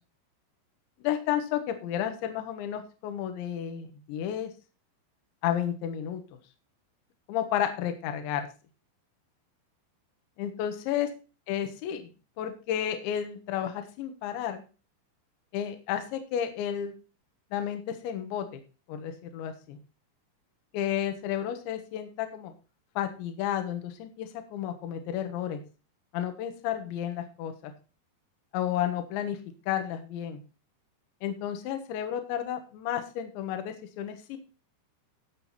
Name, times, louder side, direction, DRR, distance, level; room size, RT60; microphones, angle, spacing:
voice 1, 1.0-4.5 5.4-6.2 7.3-8.5 10.4-11.1 11.5-12.1 12.4-14.6 15.5-17.0 17.5-18.6 18.9-19.8 20.7-22.5 23.0-25.6 26.1-27.7 28.5-29.4 29.7-30.4 31.2-34.4, left 10 dB, 70° left, 7 dB, 3.4 m, -32 dB
16.0 x 6.2 x 4.2 m, 0.33 s
omnidirectional pair, 5.8 m